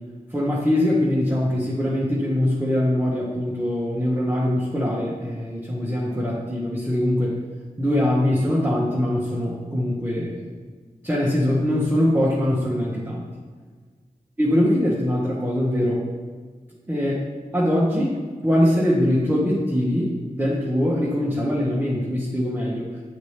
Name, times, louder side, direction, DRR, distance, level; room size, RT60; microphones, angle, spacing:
voice 1, 0.3-7.4 7.8-10.4 11.0-13.2 14.4-16.0 16.9-17.2 17.5-22.9, left 1 dB, 15° right, -6 dB, 1.2 m, -22 dB
7.9 x 4.3 x 3.3 m, 1.5 s
cardioid pair, 55°, 15 cm